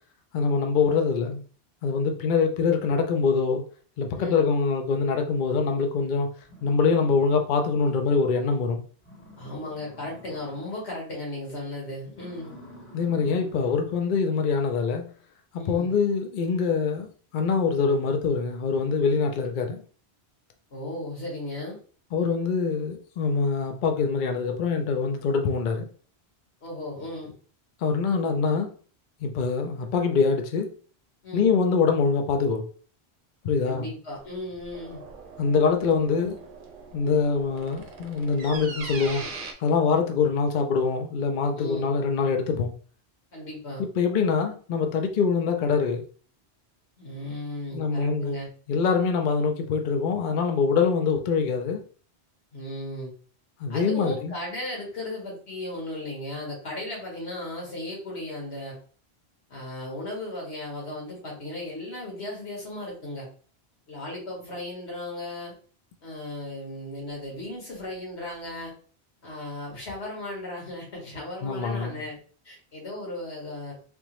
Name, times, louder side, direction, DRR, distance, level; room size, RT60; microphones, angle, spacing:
voice 1, 0.3-1.4 1.8-3.6 4.0-6.3 6.6-8.8 12.9-15.1 15.5-19.8 22.1-25.9 27.8-28.7 29.2-30.7 31.3-32.6 33.4-33.9 35.4-36.4 36.9-39.2 39.6-42.7 43.8-46.0 47.7-48.4 48.7-51.8 53.6-54.3 71.4-72.0, left 5 dB, 55° left, 0.6 m, -24 dB
sound 1, 6.4-7.8 8.2-8.3 8.7-8.8 9.0-10.9 11.2-11.6 12.1-14.1, left 1 dB, 10° left, 1.0 m, -50 dB
voice 2, 9.4-12.5 15.6-15.9 20.7-21.8 26.6-27.3 31.2-31.5 33.6-35.0 41.5-41.9 43.3-43.9 47.0-48.5 52.5-53.1 53.7-58.8 59.5-63.3 63.9-65.6 66.0-68.7 69.2-72.2 72.4-73.8, left 1 dB, 90° left, 1.8 m, -36 dB
sound 2, 34.2-39.5, right 4 dB, 55° right, 0.8 m, -41 dB
3.5 x 2.9 x 3.0 m
omnidirectional pair, 1.1 m